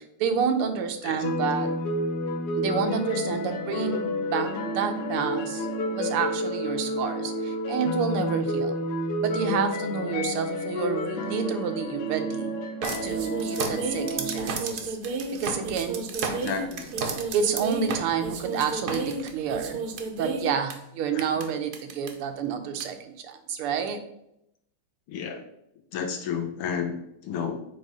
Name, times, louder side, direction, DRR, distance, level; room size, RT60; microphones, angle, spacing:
voice 1, 0.2-1.7 2.6-5.7 5.9-8.8 9.2-12.5 13.0-15.0 15.4-16.0 17.3-19.8 20.2-24.0, right 6 dB, 85° right, 7 dB, 1.7 m, -29 dB
sound 1, 1.2-14.5, left 1 dB, 60° left, 1.1 m, -30 dB
sound 2, 12.8-20.7 21.4-21.5 21.7-22.1 22.8-22.9, right 4 dB, 60° right, 1.1 m, -31 dB
voice 2, 16.3-16.9 21.1-21.3 25.1-25.4 25.9-27.7, left 7 dB, 90° left, 5 dB, 1.9 m, -32 dB
7.8 x 3.2 x 5.4 m, 0.77 s
omnidirectional pair, 2.4 m